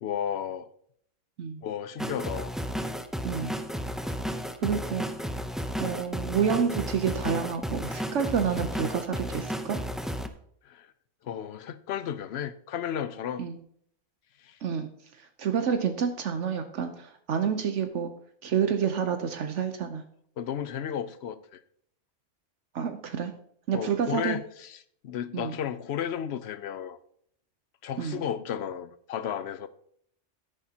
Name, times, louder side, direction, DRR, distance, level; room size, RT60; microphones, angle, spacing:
voice 1, 0.0-0.7 1.6-2.5 10.6-10.9 11.2-13.4 14.4-14.6 20.4-21.6 23.7-24.8 25.0-27.0 27.8-29.7, left 9 dB, 65° left, 0.8 m, -33 dB
sound 1, 2.0-10.3, equal, ahead, 0.4 m, -33 dB
voice 2, 4.6-5.1 5.8-9.8 13.4-13.6 14.6-14.9 15.1-18.1 18.4-20.0 22.7-23.3 23.7-24.4 25.3-25.6 28.0-28.2, right 7 dB, 75° right, 1.1 m, -29 dB
13.0 x 10.0 x 2.9 m
omnidirectional pair, 1.3 m